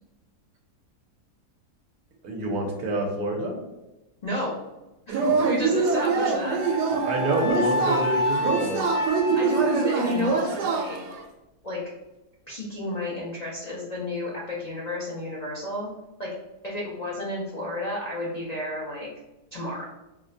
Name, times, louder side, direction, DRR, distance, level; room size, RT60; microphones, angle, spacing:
voice 1, 2.2-3.6 7.0-8.8, right 1 dB, 70° right, 1 dB, 1.2 m, -27 dB
voice 2, 4.2-4.6 5.1-6.6 9.3-11.1 11.6-11.8 12.5-15.9 16.2-16.3 16.6-19.1 19.5-19.8, left 1 dB, 60° left, -5 dB, 0.4 m, -31 dB
Yell / Cheering, 5.1-11.2, right 5 dB, 90° right, 1.2 m, -25 dB
Wind instrument woodwind instrument, 6.6-10.9, left 1 dB, 30° left, 1.0 m, -29 dB
4.4 x 2.1 x 2.5 m, 0.98 s
omnidirectional pair, 1.7 m